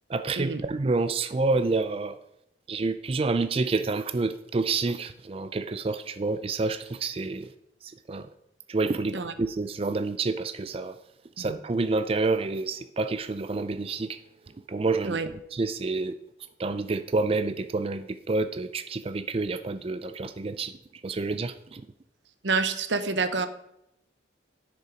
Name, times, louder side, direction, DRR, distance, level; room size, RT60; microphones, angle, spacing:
voice 1, 0.1-2.2 2.7-7.5 7.8-8.3 8.7-11.0 11.4-14.2 14.7-15.2 15.5-16.1 16.6-20.7 21.0-21.8, right 3 dB, 30° right, 11 dB, 0.4 m, -28 dB
voice 2, 22.4-23.5, right 4 dB, 85° right, 11 dB, 0.9 m, -28 dB
9.9 x 6.7 x 5.1 m, 0.80 s
head